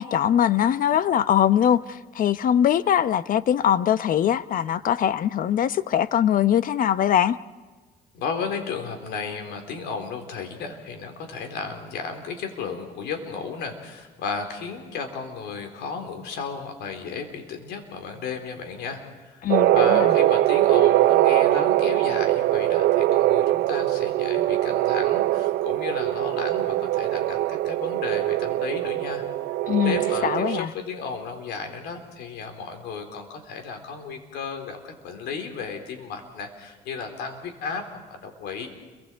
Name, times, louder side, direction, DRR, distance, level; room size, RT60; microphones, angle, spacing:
voice 1, 0.0-7.4 19.4-20.2 29.7-30.7, left 10 dB, 55° left, 0.9 m, -22 dB
voice 2, 8.1-29.2 29.8-37.8 38.1-38.7, left 5 dB, 80° left, 4.1 m, -34 dB
sound 1, 19.5-30.6, right 15 dB, 75° right, 0.6 m, -22 dB
29.5 x 24.0 x 4.7 m
cardioid pair, 110°, 17 cm